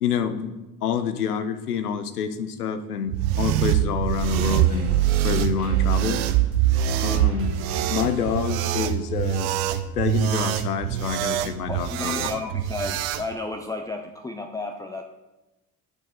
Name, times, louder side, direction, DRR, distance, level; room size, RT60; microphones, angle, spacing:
voice 1, 0.0-0.6 0.8-4.9 5.2-6.2 7.0-7.6 7.9-9.5 10.0-12.3, left 7 dB, 85° left, 11 dB, 0.7 m, -27 dB
sound 1, 3.1-13.2, right 12 dB, 65° right, 0.6 m, -24 dB
sound 2, 4.1-13.5 13.8-13.9, right 4 dB, 30° right, 1.3 m, -42 dB
voice 2, 11.4-15.0, left 2 dB, 10° left, 4 dB, 0.4 m, -33 dB
9.8 x 6.1 x 3.7 m, 1.1 s
figure-of-eight pair, 60°, 45 cm